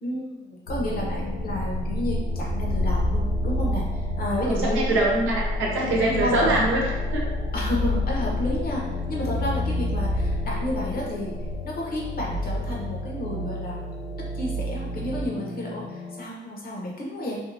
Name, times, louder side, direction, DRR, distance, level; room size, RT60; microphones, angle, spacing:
voice 1, 0.0-4.9 6.2-6.6 7.5-11.3 11.6-13.9 14.3-17.4, left 1 dB, 50° left, -3 dB, 0.8 m, -31 dB
sound 1, 0.7-16.2, left 1 dB, 90° left, 0.4 m, -28 dB
voice 2, 4.4-7.3, right 2 dB, 85° right, -3 dB, 0.8 m, -23 dB
2.6 x 2.3 x 2.6 m, 1.0 s
cardioid pair, 90°, 20 cm